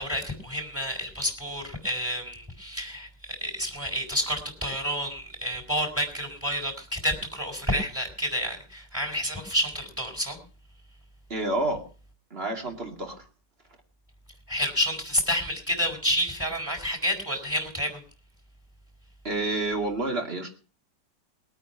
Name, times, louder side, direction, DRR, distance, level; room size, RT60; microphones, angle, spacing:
voice 1, 0.0-10.4 14.5-18.0, equal, 5° right, 4 dB, 4.5 m, -29 dB
voice 2, 11.3-11.8 12.3-13.2 19.2-20.5, right 2 dB, 35° right, 2 dB, 2.9 m, -29 dB
21.0 x 8.8 x 5.7 m, 0.38 s
omnidirectional pair, 1.9 m